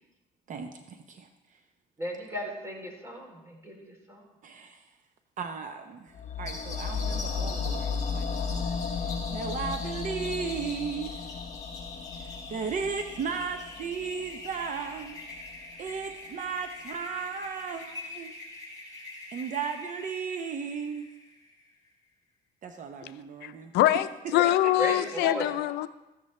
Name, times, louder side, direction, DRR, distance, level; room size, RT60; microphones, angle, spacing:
voice 1, 0.5-1.3 4.4-4.8 5.4-6.1 6.4-8.7 9.3-11.2 12.2-15.2 15.8-18.3 19.3-21.0 22.6-23.7 24.6-25.2, right 6 dB, 50° right, 6 dB, 0.8 m, -35 dB
voice 2, 2.0-4.2 24.3-24.5 24.8-25.5, equal, 15° right, -1 dB, 3.1 m, -35 dB
sound 1, 6.1-16.3 16.5-16.6, left 5 dB, 45° left, 0.9 m, -35 dB
sound 2, 6.5-21.7, left 3 dB, 20° left, 4.2 m, -43 dB
voice 3, 23.4-24.1 24.3-25.9, left 14 dB, 80° left, 13 dB, 0.5 m, -24 dB
13.5 x 10.0 x 3.2 m, 1.0 s
cardioid pair, 110°, 17 cm